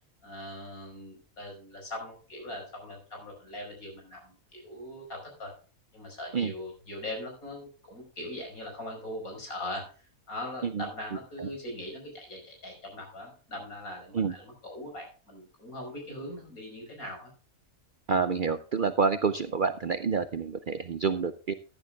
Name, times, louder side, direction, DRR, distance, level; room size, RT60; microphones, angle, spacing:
voice 1, 0.2-5.5 5.9-17.3, left 1 dB, 85° left, 1 dB, 5.5 m, -41 dB
voice 2, 18.1-21.5, right 5 dB, 55° right, 11 dB, 0.5 m, -28 dB
15.0 x 10.5 x 2.3 m, 0.37 s
omnidirectional pair, 1.5 m